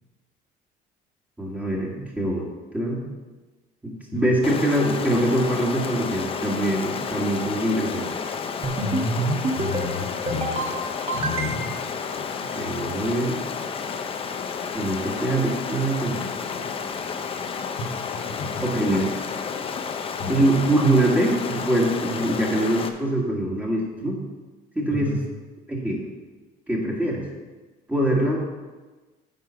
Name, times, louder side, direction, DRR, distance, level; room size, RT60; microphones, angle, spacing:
voice 1, 1.4-3.0 3.8-8.1 12.6-13.4 14.7-16.6 18.6-19.1 20.3-24.2 24.8-25.2 25.7-26.0 26.7-27.2 27.9-28.4, right 1 dB, 10° right, -2 dB, 1.9 m, -23 dB
Stream, 4.4-22.9, left 6 dB, 35° left, 0.7 m, -31 dB
sound 1, 8.6-9.1 9.4-9.9 10.3-10.7 11.1-11.9, right 2 dB, 30° right, 1.5 m, -28 dB
voice 2, 8.8-10.7 11.1-11.7 17.8-18.6 20.2-20.5 24.9-25.2, left 1 dB, 90° left, 0 dB, 2.5 m, -30 dB
9.6 x 5.6 x 5.8 m, 1.2 s
cardioid pair, 150°, 17 cm